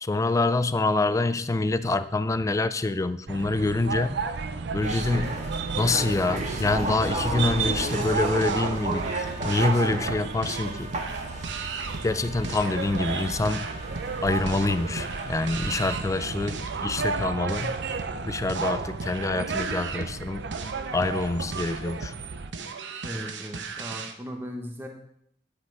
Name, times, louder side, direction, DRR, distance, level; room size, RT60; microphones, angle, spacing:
voice 1, 0.0-4.2 4.7-5.3 5.8-11.0 12.0-13.7 14.2-17.8 18.2-20.5 20.9-22.1, left 2 dB, 20° left, 13 dB, 0.4 m, -26 dB
sound 1, 3.3-22.5, right 4 dB, 65° right, 0.6 m, -33 dB
sound 2, 4.8-16.0, right 2 dB, 40° right, 1.4 m, -34 dB
sound 3, 7.9-24.2, right 4 dB, 85° right, 0.8 m, -38 dB
voice 2, 23.0-24.9, equal, 15° right, 1 dB, 1.0 m, -37 dB
10.0 x 5.8 x 4.7 m, 0.72 s
head